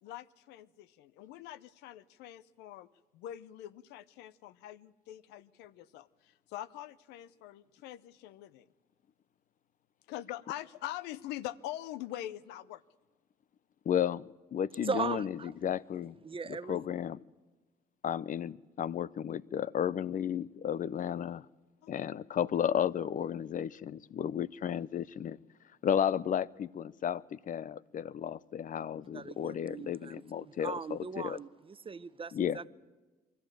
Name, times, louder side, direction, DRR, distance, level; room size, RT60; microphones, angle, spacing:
voice 1, 0.0-2.9 3.1-8.7 10.1-12.8 21.8-21.9, left 13 dB, 90° left, 0.7 m, -44 dB
voice 2, 13.9-16.2 16.5-17.2 18.0-21.4 21.9-25.4 25.8-31.4 32.3-32.6, left 9 dB, 50° left, 0.6 m, -33 dB
voice 3, 14.8-15.5 16.2-16.8 29.1-32.7, right 5 dB, 30° right, 0.9 m, -39 dB
24.5 x 14.0 x 9.0 m
supercardioid pair, 70°, 17 cm